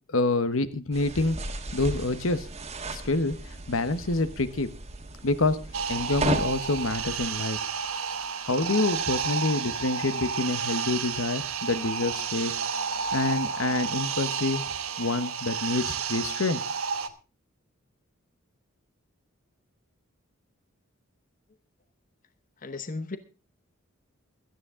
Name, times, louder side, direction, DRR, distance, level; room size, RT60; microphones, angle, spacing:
voice 1, 0.1-1.4 1.7-2.5 2.9-4.7 5.2-5.6 5.9-7.6 8.5-12.6 13.1-14.6 15.0-16.6, left 2 dB, 70° left, 13 dB, 1.1 m, -27 dB
sound 1, 0.9-7.3, right 2 dB, 30° right, 1.6 m, -35 dB
sound 2, 5.7-17.1, right 6 dB, 85° right, 1.2 m, -31 dB
voice 2, 22.6-23.2, left 3 dB, 40° left, 12 dB, 0.9 m, -35 dB
17.0 x 13.0 x 3.7 m, 0.32 s
head